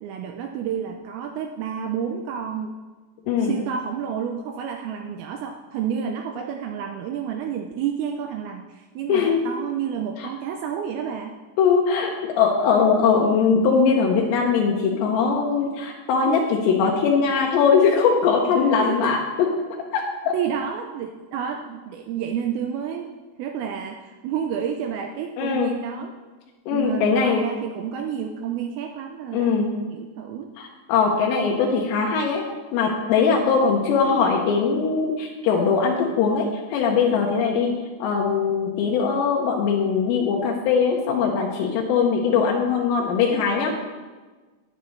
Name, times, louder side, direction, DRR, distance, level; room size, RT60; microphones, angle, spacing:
voice 1, 0.0-2.8 3.4-11.4 16.3-16.5 18.8-19.2 20.3-23.1 23.4-26.1 26.7-30.5, right 8 dB, 85° right, 4 dB, 2.2 m, -30 dB
voice 2, 3.3-3.6 9.1-9.4 10.2-10.3 11.6-19.5 19.9-20.3 25.4-25.7 26.7-27.4 29.3-29.7 30.6-32.5 32.7-37.7 38.0-43.7, left 5 dB, 85° left, -1 dB, 3.0 m, -21 dB
10.0 x 8.3 x 3.1 m, 1.3 s
omnidirectional pair, 4.9 m